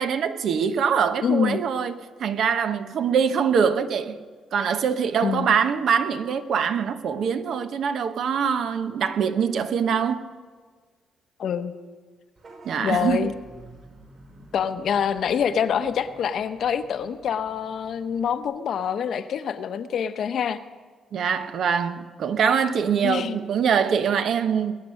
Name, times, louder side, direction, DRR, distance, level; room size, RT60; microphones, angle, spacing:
voice 1, 0.0-4.2 4.5-10.3 12.6-13.3 21.1-24.7, right 7 dB, 65° right, 1.0 m, -23 dB
voice 2, 1.2-1.6 5.2-5.5 11.4-11.7 12.8-13.3 14.5-20.6 23.0-23.4 23.7-23.8, left 8 dB, 65° left, 0.9 m, -25 dB
Vehicle horn car horn honking / Bus, 12.4-18.4, right 2 dB, 50° right, 4.6 m, -50 dB
21.0 x 8.4 x 6.4 m
cardioid pair, 90°, 0 cm